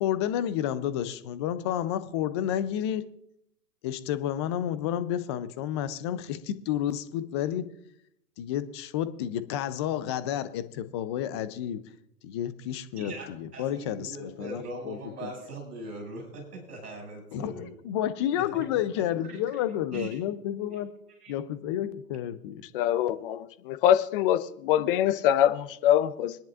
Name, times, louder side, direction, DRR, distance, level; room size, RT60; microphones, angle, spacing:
voice 1, 0.0-3.0 3.8-7.7 8.4-11.9 12.2-15.3 17.3-20.9 21.3-22.6, left 11 dB, 20° left, 14 dB, 0.5 m, -30 dB
voice 2, 13.0-17.7 18.4-18.7 18.9-19.4 19.9-20.2 20.7-20.8 21.2-21.3, right 2 dB, 70° right, 1 dB, 6.3 m, -41 dB
voice 3, 22.7-26.4, left 11 dB, 35° left, 11 dB, 0.8 m, -24 dB
26.0 x 10.0 x 2.5 m, 0.74 s
hypercardioid pair, 130°, 49 cm